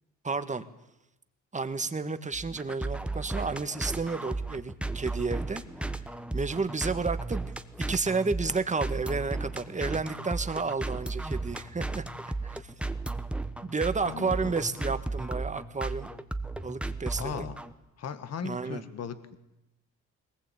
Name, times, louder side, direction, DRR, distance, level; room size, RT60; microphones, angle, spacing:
voice 1, 0.2-0.7 1.5-5.9 6.3-12.0 12.4-12.7 13.6-16.1 16.6-17.5 18.4-18.8, right 4 dB, 25° right, 10 dB, 1.7 m, -31 dB
sound 1, 2.3-17.7, right 2 dB, 5° right, 1.3 m, -35 dB
voice 2, 14.0-14.5 17.1-17.6 18.0-19.4, left 7 dB, 55° left, 11 dB, 1.8 m, -37 dB
21.5 x 19.5 x 8.7 m, 0.91 s
cardioid pair, 90°, 30 cm